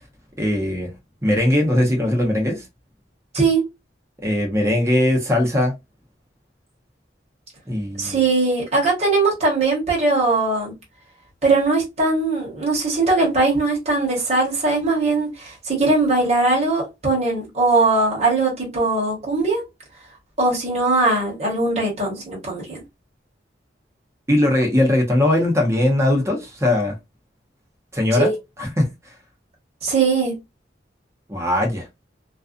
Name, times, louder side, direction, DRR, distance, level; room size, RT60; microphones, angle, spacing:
voice 1, 0.4-0.9 1.2-2.6 4.2-5.7 7.7-8.2 24.3-26.9 27.9-28.3 28.6-28.9 31.3-31.8, left 1 dB, 15° right, 0.8 m, -19 dB
voice 2, 3.3-3.7 8.0-10.7 11.4-19.6 20.4-22.8 28.1-28.3 29.8-30.4, right 3 dB, 35° right, 1.1 m, -20 dB
2.5 x 2.3 x 2.4 m
head